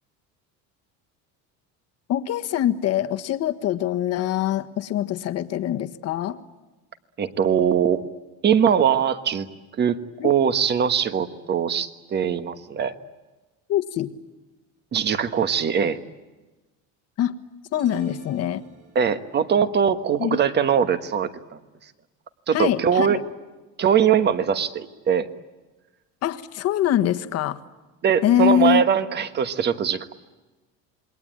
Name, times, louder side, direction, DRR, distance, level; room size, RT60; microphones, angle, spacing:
voice 1, 2.1-6.4 10.2-10.3 13.7-14.1 17.2-17.3 17.7-18.6 20.2-20.4 22.5-23.2 26.2-27.6 28.2-28.8, left 11 dB, 45° left, 9 dB, 1.5 m, -23 dB
voice 2, 7.2-8.0 8.4-9.5 9.8-12.9 14.9-16.0 18.9-21.6 22.5-23.2 23.8-25.3 28.0-30.1, right 8 dB, 30° right, 11 dB, 1.4 m, -21 dB
sound 1, 17.7-19.3, right 6 dB, 55° right, 7.7 m, -46 dB
28.0 x 22.0 x 9.0 m, 1.2 s
cardioid pair, 155°, 35 cm